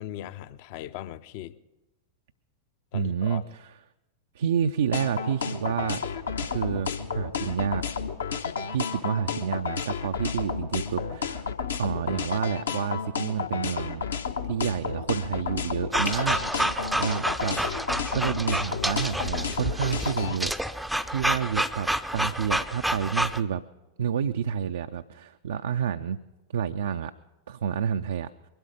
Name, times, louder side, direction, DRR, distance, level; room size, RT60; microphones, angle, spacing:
voice 1, 0.0-1.5 2.9-3.4, left 12 dB, 45° left, 15 dB, 0.6 m, -38 dB
voice 2, 2.9-3.7 4.3-6.0 6.4-7.8 8.7-11.4 11.8-14.0 14.4-17.6 18.1-20.5 21.1-23.6 24.0-26.2 26.5-27.1 27.5-28.3, right 8 dB, 60° right, 8 dB, 0.4 m, -29 dB
sound 1, 4.9-20.4, left 6 dB, 70° left, 1.0 m, -31 dB
sound 2, 15.9-23.4, right 1 dB, ahead, 0.5 m, -29 dB
22.0 x 12.0 x 5.1 m, 1.0 s
figure-of-eight pair, 90°, 0 cm